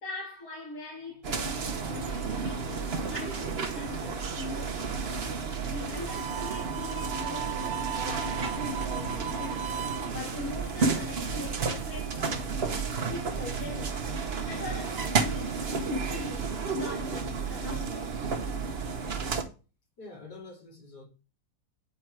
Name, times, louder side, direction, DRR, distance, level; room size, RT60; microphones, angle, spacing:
voice 1, 0.0-5.1 5.6-9.8 10.1-14.0 14.3-18.2, left 3 dB, 55° left, 2.3 m, -42 dB
sound 1, 1.2-19.4, right 4 dB, 45° right, 0.9 m, -32 dB
Harmonica, 6.0-10.1, right 9 dB, 70° right, 0.9 m, -36 dB
voice 2, 20.0-21.1, left 2 dB, 70° left, 3.7 m, -47 dB
8.8 x 4.6 x 4.6 m
omnidirectional pair, 1.9 m